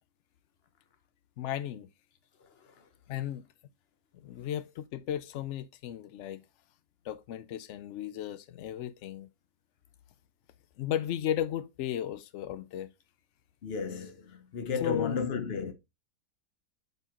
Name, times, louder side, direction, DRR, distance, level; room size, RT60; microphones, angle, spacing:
voice 1, 1.4-1.9 3.1-3.5 4.1-6.4 7.0-9.3 10.8-12.9 14.8-15.2, left 11 dB, 90° left, 0.6 m, -35 dB
voice 2, 2.4-2.9 13.6-15.7, left 5 dB, 45° left, 1.0 m, -34 dB
7.9 x 4.7 x 2.9 m
omnidirectional pair, 1.8 m